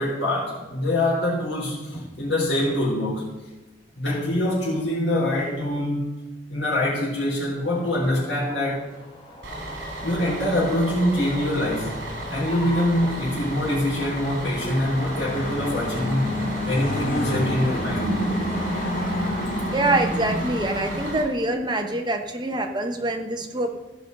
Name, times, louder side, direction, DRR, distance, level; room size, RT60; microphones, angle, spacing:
voice 1, 0.0-3.3 4.0-6.1 6.5-8.9 10.0-12.0 12.3-16.3 16.7-18.2, left 1 dB, 85° left, -10 dB, 4.1 m, -24 dB
sound 1, 7.7-13.5, equal, 25° left, 2.1 m, -41 dB
Bus, 9.4-21.2, right 1 dB, 65° right, 3.1 m, -35 dB
sound 2, 11.6-21.1, equal, 45° left, 2.4 m, -30 dB
voice 2, 19.7-23.7, right 2 dB, 25° right, 4 dB, 1.0 m, -25 dB
16.5 x 5.5 x 5.4 m, 1.1 s
head